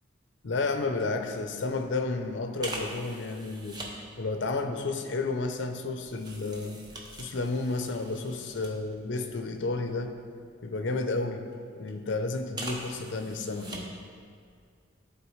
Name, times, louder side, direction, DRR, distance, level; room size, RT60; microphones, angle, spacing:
voice 1, 0.4-3.8 4.2-6.8 7.1-10.1 10.6-11.5 11.7-13.9, left 3 dB, 65° left, 7 dB, 0.5 m, -31 dB
sound 1, 1.0-1.1 1.5-1.7 2.6-4.0 4.7-9.2 9.6-10.9 11.5-11.9 12.5-14.1 14.4-14.6, right 2 dB, 20° right, 0.7 m, -43 dB
11.5 x 4.2 x 3.1 m, 2.2 s
head